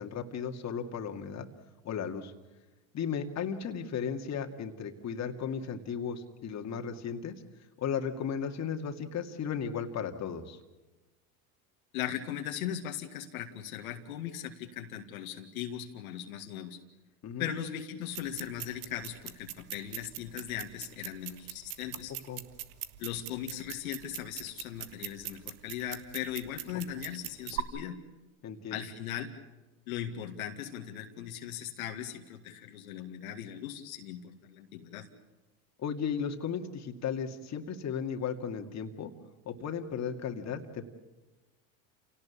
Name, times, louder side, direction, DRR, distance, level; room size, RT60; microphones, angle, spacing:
voice 1, 0.0-1.5 1.8-2.3 2.9-7.4 7.8-10.6 17.2-17.5 22.1-22.4 28.4-28.9 35.8-39.1 39.5-40.9, left 7 dB, 40° left, 4 dB, 2.2 m, -35 dB
voice 2, 11.9-16.8 17.4-22.1 23.0-28.0 28.7-29.3 29.9-35.1, left 10 dB, 85° left, 4 dB, 2.1 m, -39 dB
sound 1, 18.1-27.6, right 14 dB, 75° right, 1.4 m, -42 dB
28.0 x 18.0 x 8.4 m, 1.1 s
hypercardioid pair, 90°, 41 cm